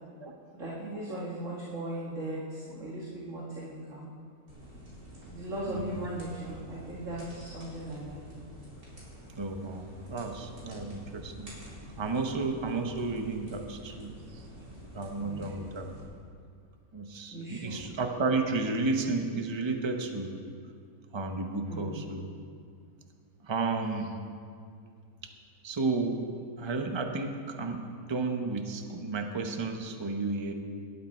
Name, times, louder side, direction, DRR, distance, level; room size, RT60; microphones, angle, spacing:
voice 1, 0.5-4.1 5.3-8.2 15.1-15.6 17.3-17.8 21.6-22.0, right 1 dB, 55° right, -6 dB, 2.3 m, -38 dB
sound 1, 4.5-16.0, equal, 80° right, 4.6 m, -48 dB
voice 2, 9.4-11.5 12.0-14.4 14.9-15.9 16.9-20.3 21.1-22.2 23.4-24.1 25.2-25.3 25.6-26.2 26.6-27.8 28.1-30.5, right 3 dB, 20° right, 4 dB, 0.9 m, -32 dB
18.5 x 11.5 x 4.5 m, 2.2 s
omnidirectional pair, 1.6 m